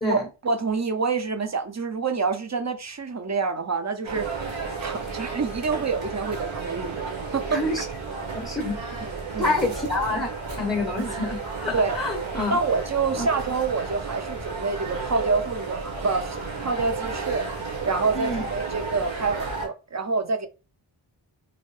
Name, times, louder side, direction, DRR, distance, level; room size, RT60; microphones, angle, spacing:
voice 1, 0.0-4.5 4.8-7.6 9.0-9.6 11.7-12.0 12.5-20.5, right 4 dB, 35° right, 0.5 m, -27 dB
sound 1, 4.0-19.7, right 4 dB, 70° right, 1.1 m, -33 dB
voice 2, 7.5-7.8 8.3-8.8 9.4-10.3 10.6-12.6 13.2-13.3 18.1-18.5, left 2 dB, 10° left, 0.7 m, -27 dB
2.7 x 2.1 x 3.1 m
wide cardioid pair, 45°, 49 cm